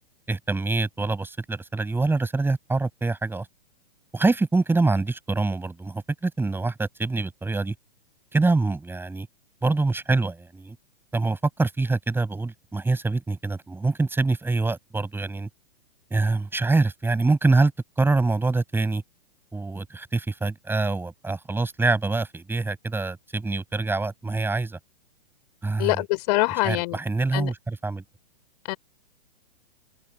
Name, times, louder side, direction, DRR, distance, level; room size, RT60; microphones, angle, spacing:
voice 1, 0.3-3.5 4.1-7.7 8.3-9.3 9.6-10.8 11.1-15.5 16.1-17.7 18.0-19.0 19.5-24.8 25.6-26.0 26.6-28.0, right 3 dB, 5° right, 6.0 m, -25 dB
voice 2, 25.8-27.0 27.3-27.5 28.7-28.8, left 23 dB, 45° left, 5.5 m, -24 dB
figure-of-eight pair, 110°, 30 cm